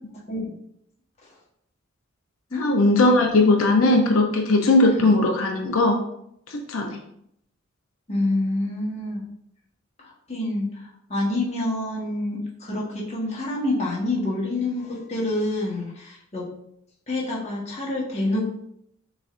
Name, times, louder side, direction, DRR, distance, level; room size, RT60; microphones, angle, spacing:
voice 1, 0.1-0.6 2.5-2.7 4.8-5.1 8.1-9.2 10.0-16.6 17.1-18.7, left 2 dB, 35° left, -4 dB, 1.3 m, -27 dB
voice 2, 2.6-6.0 6.5-7.0, left 2 dB, 85° left, 2 dB, 0.6 m, -19 dB
6.1 x 3.2 x 2.5 m, 0.75 s
head